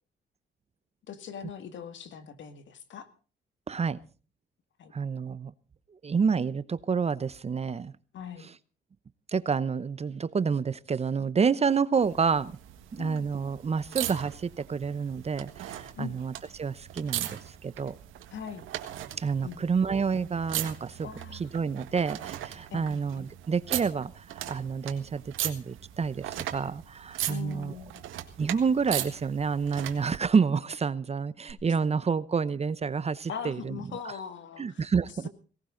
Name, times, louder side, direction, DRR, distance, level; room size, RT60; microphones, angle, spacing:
voice 1, 1.1-3.1 4.8-4.9 8.1-8.5 13.0-13.3 16.0-16.2 18.3-18.7 19.4-19.9 21.0-21.4 22.7-23.3 27.3-28.0 33.3-34.9, left 7 dB, 70° left, 10 dB, 2.0 m, -41 dB
voice 2, 3.7-4.0 4.9-5.5 6.0-7.9 9.3-12.6 12.9-18.0 19.2-27.7 28.4-33.8 34.6-35.3, right 5 dB, 30° right, 18 dB, 0.8 m, -29 dB
sound 1, 12.0-30.2 31.5-31.6, right 12 dB, 90° right, 1.6 m, -39 dB
18.0 x 17.5 x 3.9 m, 0.37 s
cardioid pair, 90°, 20 cm